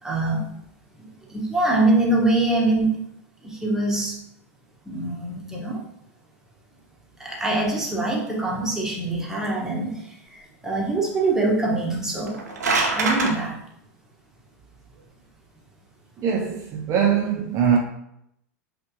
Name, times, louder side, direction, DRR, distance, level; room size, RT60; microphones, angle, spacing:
voice 1, 0.0-0.5 1.0-2.9 3.4-4.1 4.9-5.8 7.2-10.0 10.6-12.4 12.9-13.5, right 2 dB, 5° right, 1.1 m, -23 dB
sound 1, 12.2-13.3, right 3 dB, 85° right, 0.7 m, -23 dB
voice 2, 16.2-17.8, right 7 dB, 35° right, 0.5 m, -22 dB
5.4 x 2.5 x 2.8 m
hypercardioid pair, 95°, 9 cm